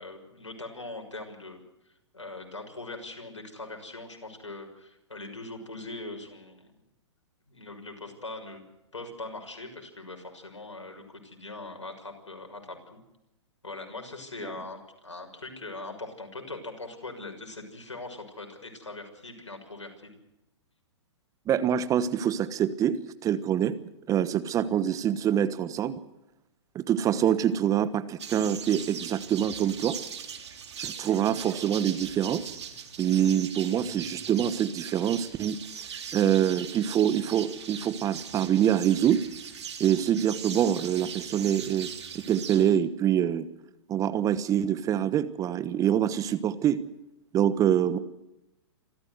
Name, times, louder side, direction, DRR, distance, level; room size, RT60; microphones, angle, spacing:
voice 1, 0.0-1.6 2.1-6.7 7.4-8.6 8.9-13.0 13.6-20.1, left 2 dB, 85° left, 4 dB, 6.3 m, -41 dB
voice 2, 21.5-23.7 24.1-26.0 26.7-30.0 30.8-32.5 33.0-35.6 36.1-39.2 39.8-41.9 42.3-43.5 43.9-46.8 47.3-48.0, right 10 dB, 20° right, 14 dB, 1.2 m, -25 dB
sound 1, 28.2-42.6, right 7 dB, 65° right, 3.6 m, -40 dB
27.0 x 15.0 x 8.0 m, 0.92 s
hypercardioid pair, 120°, 15 cm